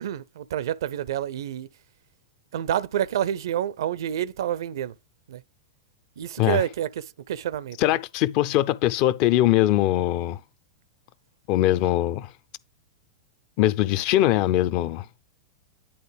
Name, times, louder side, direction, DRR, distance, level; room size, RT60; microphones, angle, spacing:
voice 1, 0.0-1.7 2.5-4.9 5.3-5.4 6.2-7.8, right 10 dB, 65° right, 0.4 m, -28 dB
voice 2, 7.8-10.4 11.5-12.3 13.6-15.1, left 14 dB, 45° left, 0.5 m, -21 dB
10.5 x 3.8 x 3.4 m
figure-of-eight pair, 95°, 2 cm